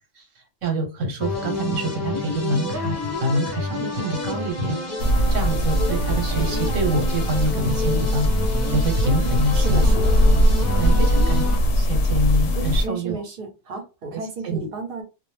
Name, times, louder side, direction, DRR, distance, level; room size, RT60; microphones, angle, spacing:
voice 1, 0.6-4.8 5.3-8.3 8.7-9.8 10.8-11.4 11.7-13.2 14.4-14.7, right 1 dB, 80° right, 4 dB, 1.2 m, -26 dB
sound 1, 1.2-11.6, left 1 dB, 20° left, 0.4 m, -29 dB
sound 2, 5.0-12.9, equal, 65° left, 0.7 m, -20 dB
voice 2, 9.5-10.1 10.9-11.1 12.6-15.0, right 3 dB, 50° right, 4 dB, 0.9 m, -33 dB
2.4 x 2.1 x 3.1 m, 0.30 s
omnidirectional pair, 1.3 m